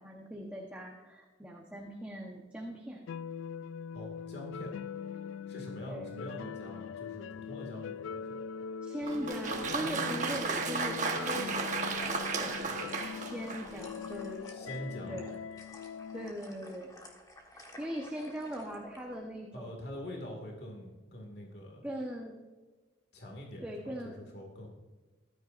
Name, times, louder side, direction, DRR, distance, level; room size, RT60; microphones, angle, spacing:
voice 1, 0.0-3.0 5.9-6.2 8.8-12.9 13.1-14.5 15.1-15.4 16.1-16.9 17.8-19.8 21.8-22.4 23.6-24.2, equal, 5° right, -1 dB, 1.0 m, -40 dB
sound 1, 3.1-16.3, left 7 dB, 90° left, 0.3 m, -42 dB
voice 2, 3.9-4.7 5.5-8.4 14.5-15.2 19.5-21.8 23.1-24.7, equal, 55° left, 1 dB, 2.1 m, -44 dB
Applause, 9.0-13.9, right 4 dB, 40° right, 1.2 m, -34 dB
sound 2, 11.8-19.0, left 1 dB, 20° left, 1.5 m, -53 dB
14.5 x 12.5 x 2.6 m, 1.3 s
head